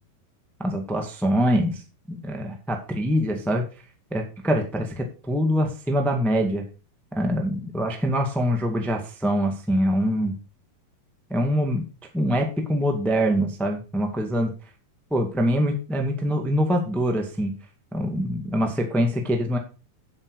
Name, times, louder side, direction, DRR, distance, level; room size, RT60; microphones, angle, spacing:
voice 1, 0.6-1.8 2.1-3.6 4.1-6.6 7.1-10.3 11.3-11.8 12.1-14.5 15.1-17.5 17.9-19.6, equal, ahead, 3 dB, 0.6 m, -24 dB
9.8 x 8.0 x 4.9 m, 0.34 s
omnidirectional pair, 4.4 m